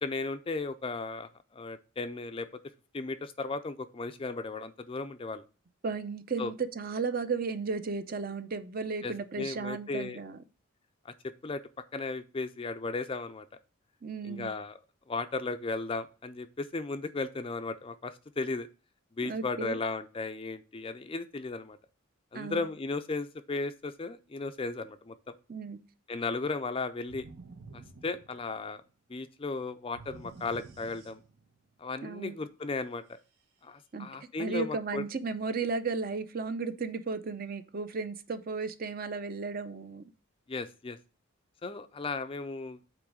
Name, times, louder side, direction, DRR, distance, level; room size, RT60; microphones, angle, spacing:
voice 1, 0.0-2.5 2.9-5.4 6.4-6.5 9.0-10.2 11.1-11.6 11.9-13.5 14.2-14.8 15.1-18.7 19.2-21.8 22.3-25.3 26.1-27.3 27.7-28.8 29.1-31.2 31.8-33.2 33.6-35.0 40.5-41.0 41.6-42.8, left 3 dB, 25° left, 10 dB, 0.4 m, -35 dB
voice 2, 5.8-10.4 14.0-14.5 19.2-19.8 22.3-22.6 25.5-25.8 32.0-32.4 33.9-34.1 34.4-40.1, right 4 dB, 40° right, 11 dB, 0.6 m, -34 dB
sound 1, 27.1-28.8 29.9-31.6, right 3 dB, 85° right, 1.6 m, -50 dB
8.3 x 3.1 x 6.1 m, 0.35 s
head